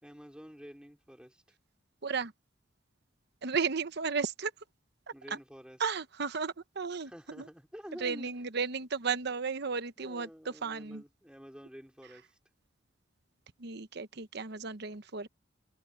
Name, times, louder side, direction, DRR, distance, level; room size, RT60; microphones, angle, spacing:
voice 1, 0.0-1.6 5.1-5.8 7.1-8.4 10.0-12.4, equal, 5° right, 4.2 m, -49 dB
voice 2, 3.4-4.5 5.3-5.4 5.8-7.5 8.0-11.0 13.6-15.3, right 5 dB, 55° right, 0.9 m, -34 dB
head